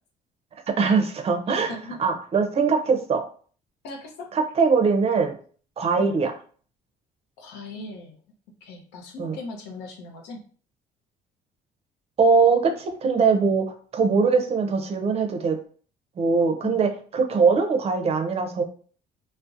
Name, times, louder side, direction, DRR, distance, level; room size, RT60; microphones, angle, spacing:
voice 1, 0.7-1.7 2.0-3.2 4.3-5.4 5.8-6.3 9.2-9.4 12.2-15.6 16.2-18.6, right 5 dB, 35° right, 5 dB, 0.5 m, -21 dB
voice 2, 1.7-2.0 3.8-4.3 5.9-6.2 7.4-8.2 8.6-10.4 16.6-16.8, left 2 dB, 90° left, 2 dB, 0.6 m, -38 dB
2.6 x 2.1 x 2.4 m, 0.44 s
cardioid pair, 110°, 17 cm